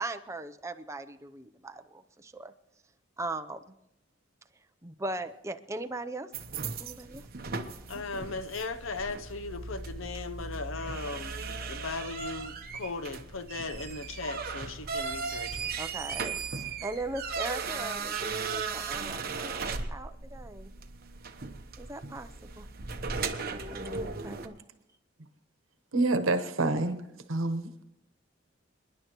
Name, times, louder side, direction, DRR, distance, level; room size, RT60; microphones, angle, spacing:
voice 1, 0.0-2.5 3.2-3.7 4.8-6.3 6.8-7.2 15.8-20.7 21.8-22.3 22.6-22.7 23.5-24.6, right 2 dB, 15° right, 0.6 m, -39 dB
sound 1, 6.3-24.5, right 4 dB, 50° right, 1.0 m, -37 dB
voice 2, 7.9-15.7, left 3 dB, 80° left, 0.8 m, -38 dB
voice 3, 25.9-27.0 27.3-27.7, right 2 dB, 85° right, 1.1 m, -27 dB
29.5 x 10.5 x 3.0 m
head